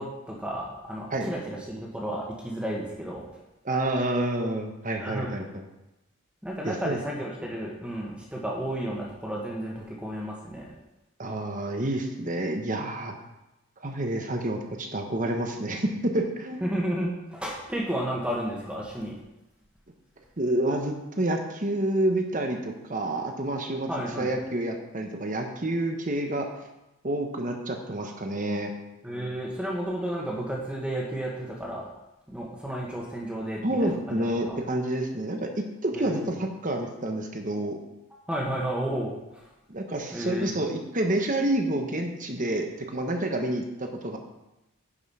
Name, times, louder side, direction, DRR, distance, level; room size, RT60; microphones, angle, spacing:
voice 1, 0.0-3.3 5.0-5.3 6.4-10.7 16.6-19.2 23.9-24.3 29.0-31.9 32.3-34.6 35.9-36.3 38.3-39.5 40.1-40.5, right 1 dB, 5° right, -2 dB, 1.5 m, -32 dB
voice 2, 3.6-5.6 6.6-7.0 11.2-13.1 13.8-16.6 20.4-26.5 27.0-28.7 33.6-37.8 39.7-44.2, right 1 dB, 35° right, 3 dB, 1.1 m, -28 dB
10.0 x 5.6 x 5.6 m, 0.95 s
head